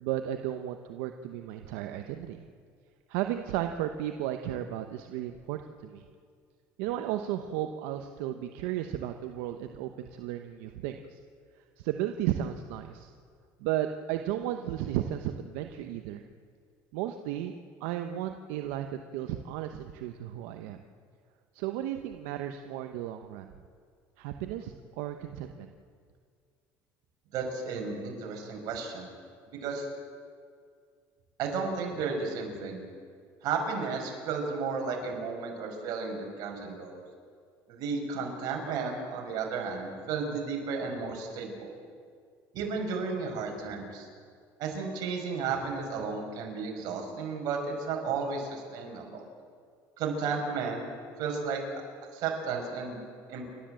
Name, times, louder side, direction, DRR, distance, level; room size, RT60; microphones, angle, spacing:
voice 1, 0.0-2.5 3.1-6.0 6.8-11.2 11.6-13.1 13.6-16.2 16.9-20.8 21.5-23.5 24.2-25.7, right 12 dB, 90° right, 6 dB, 0.9 m, -34 dB
voice 2, 27.3-29.1 29.5-29.9 31.4-32.9 33.4-37.0 37.7-41.8 42.5-44.1 44.6-49.3 50.0-50.8 51.2-51.6 52.1-53.0 53.3-53.5, right 5 dB, 65° right, 1 dB, 5.4 m, -33 dB
29.5 x 12.5 x 7.7 m, 2.1 s
cardioid pair, 120°, 7 cm